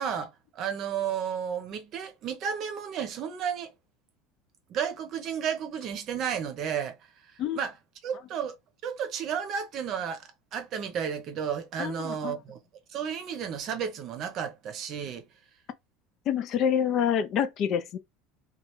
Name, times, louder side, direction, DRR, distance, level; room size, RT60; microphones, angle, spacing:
voice 1, 0.0-3.7 4.7-7.0 7.5-7.7 8.0-8.5 8.8-12.6 12.9-15.3, right 8 dB, 45° right, 0.7 m, -32 dB
voice 2, 11.8-12.4 16.3-18.0, left 8 dB, 45° left, 0.5 m, -27 dB
3.1 x 2.4 x 3.0 m
supercardioid pair, 140°, 0 cm